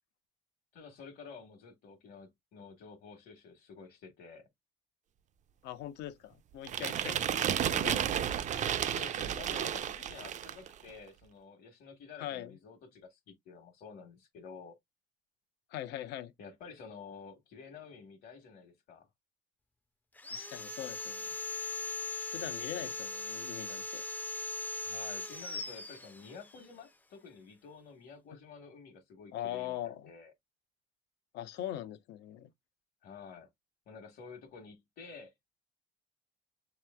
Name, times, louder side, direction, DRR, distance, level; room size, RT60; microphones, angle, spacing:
voice 1, 0.7-4.5 8.8-14.8 16.4-19.1 22.8-22.9 24.8-30.3 33.0-33.5 33.9-35.3, left 5 dB, 65° left, 1.3 m, -50 dB
voice 2, 5.6-8.2 12.2-12.6 15.7-16.3 20.3-21.3 22.3-24.0 29.3-30.1 31.3-32.5, left 12 dB, 85° left, 0.8 m, -41 dB
sound 1, 6.7-10.7, right 9 dB, 45° right, 0.5 m, -32 dB
Sawing, 20.2-26.6, left 3 dB, 10° left, 0.4 m, -39 dB
6.7 x 3.1 x 2.2 m
cardioid pair, 110°, 17 cm